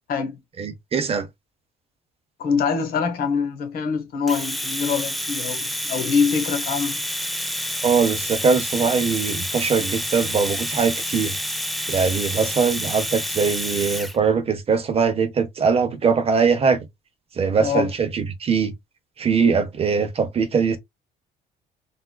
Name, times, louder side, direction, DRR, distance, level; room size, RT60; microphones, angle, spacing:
voice 1, 0.6-1.3 7.8-11.4 11.9-16.8 17.4-18.7 19.2-20.8, right 5 dB, 35° right, 0.7 m, -21 dB
voice 2, 2.4-7.0 17.6-17.9, left 6 dB, 60° left, 1.1 m, -24 dB
Domestic sounds home sounds, 4.3-14.2, equal, ahead, 0.4 m, -28 dB
3.4 x 2.4 x 2.2 m
cardioid pair, 110°, 17 cm